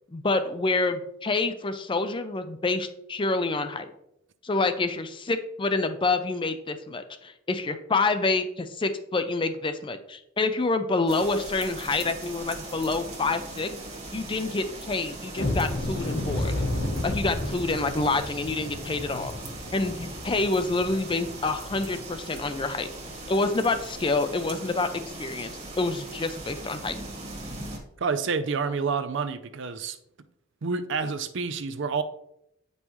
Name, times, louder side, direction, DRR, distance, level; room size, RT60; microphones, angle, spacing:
voice 1, 0.1-3.9 4.4-13.7 14.1-16.6 17.0-19.3 19.7-22.9 23.3-25.5 25.8-26.9, left 3 dB, 25° left, 9 dB, 0.5 m, -27 dB
sound 1, 11.1-27.8, right 2 dB, 35° right, 1.5 m, -40 dB
sound 2, 15.3-22.1 22.5-22.6 23.0-23.2 23.7-23.8, left 1 dB, 60° left, 1.2 m, -32 dB
voice 2, 28.0-30.0 30.6-32.0, right 5 dB, 65° right, 11 dB, 0.5 m, -28 dB
8.3 x 5.4 x 3.1 m, 0.78 s
head